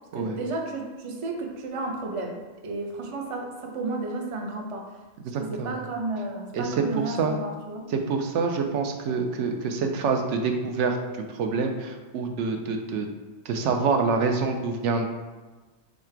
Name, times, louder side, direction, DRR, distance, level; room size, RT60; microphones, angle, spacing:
voice 1, 0.1-4.9 5.4-7.9, right 2 dB, 45° right, 1 dB, 0.4 m, -32 dB
voice 2, 5.2-5.7 6.5-7.3 7.9-11.0 11.3-13.1 13.5-15.1, right 4 dB, 75° right, 4 dB, 0.9 m, -26 dB
3.7 x 3.2 x 4.4 m, 1.3 s
omnidirectional pair, 1.3 m